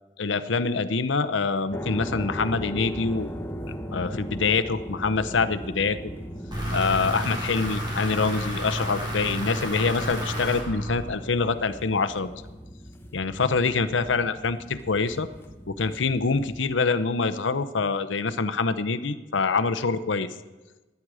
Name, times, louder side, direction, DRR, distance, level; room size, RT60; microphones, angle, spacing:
voice 1, 0.2-3.3 3.9-6.0 6.7-12.3 13.1-15.3 15.7-20.3, left 4 dB, 85° left, 11 dB, 0.8 m, -25 dB
sound 1, 1.7-16.6, equal, 10° left, 0.9 m, -38 dB
sound 2, 6.5-11.4, equal, 25° right, 4.0 m, -31 dB
20.5 x 9.4 x 4.9 m, 1.2 s
head